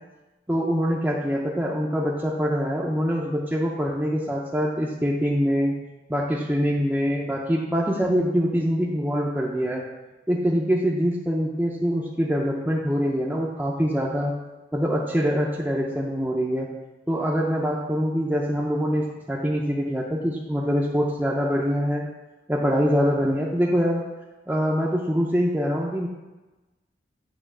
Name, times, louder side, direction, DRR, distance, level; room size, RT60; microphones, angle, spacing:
voice 1, 0.5-5.7 6.1-9.8 10.3-14.3 14.7-16.7 17.1-22.1 22.5-24.0 24.5-26.1, equal, 10° right, -4 dB, 0.6 m, -24 dB
8.7 x 3.0 x 6.1 m, 1.1 s
head